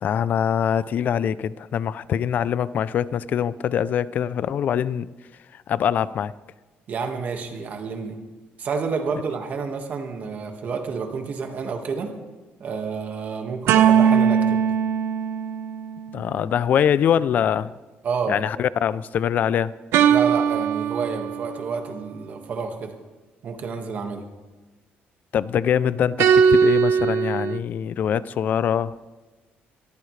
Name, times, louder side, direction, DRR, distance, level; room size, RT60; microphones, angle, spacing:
voice 1, 0.0-5.1 5.5-6.3 16.1-17.7 18.3-19.7 25.3-29.1, left 9 dB, 45° left, 18 dB, 0.4 m, -23 dB
voice 2, 6.9-8.2 8.6-12.1 12.6-14.6 18.0-18.4 20.1-22.9 23.4-24.2, right 5 dB, 45° right, 4 dB, 1.7 m, -29 dB
sound 1, 13.7-16.2 19.9-21.7 26.2-27.6, right 7 dB, 90° right, 0.8 m, -19 dB
23.0 x 13.5 x 3.3 m, 1.2 s
cardioid pair, 170°, 4 cm